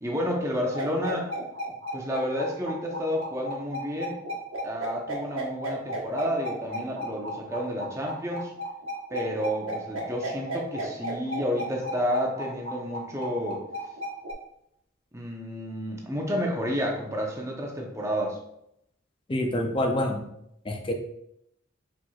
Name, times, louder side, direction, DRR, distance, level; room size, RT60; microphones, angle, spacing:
voice 1, 0.0-1.3 1.9-4.2 4.6-8.5 9.1-13.6 15.1-18.4, equal, 15° right, 0 dB, 0.7 m, -30 dB
sound 1, 0.7-14.3, equal, 80° right, 1.2 m, -34 dB
voice 2, 19.3-20.2 20.7-20.9, left 1 dB, 25° left, 4 dB, 0.5 m, -26 dB
4.6 x 4.3 x 2.3 m, 0.78 s
head